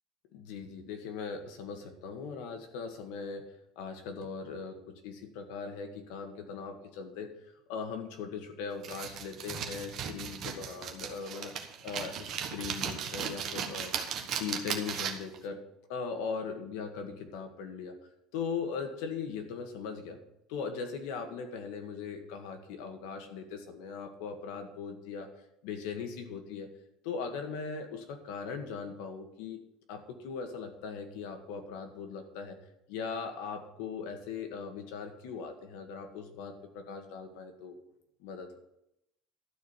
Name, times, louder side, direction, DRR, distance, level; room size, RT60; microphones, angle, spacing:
voice 1, 0.3-3.4 3.7-7.3 7.7-11.5 11.8-13.9 14.4-15.6 15.9-17.9 18.3-20.2 20.5-25.3 25.6-26.7 27.0-29.6 29.9-32.6 32.9-37.8 38.2-38.6, left 5 dB, 80° left, 5 dB, 1.8 m, -39 dB
sound 1, 8.8-15.4, right 8 dB, 40° right, 1.2 m, -37 dB
12.5 x 4.6 x 8.3 m, 0.83 s
cardioid pair, 175°, 0 cm